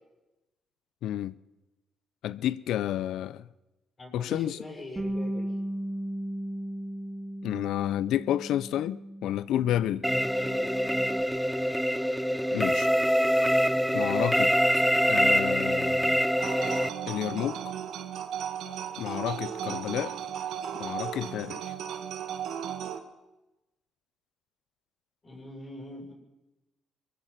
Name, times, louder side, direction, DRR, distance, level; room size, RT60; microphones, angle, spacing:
voice 1, 1.0-1.3 2.2-3.5 4.1-4.6 7.4-10.1 12.5-12.9 13.9-16.3 17.1-17.7 19.0-20.1 20.7-21.7, left 12 dB, 80° left, 0.7 m, -31 dB
voice 2, 4.0-5.5 10.3-10.8 25.2-26.1, left 1 dB, 30° left, 7.4 m, -42 dB
Bass guitar, 5.0-11.2, right 1 dB, 20° right, 2.9 m, -36 dB
sound 1, 10.0-16.9, equal, ahead, 0.8 m, -25 dB
sound 2, 16.4-23.0, right 9 dB, 80° right, 1.7 m, -35 dB
22.5 x 22.5 x 5.9 m
cardioid pair, 90°, 0 cm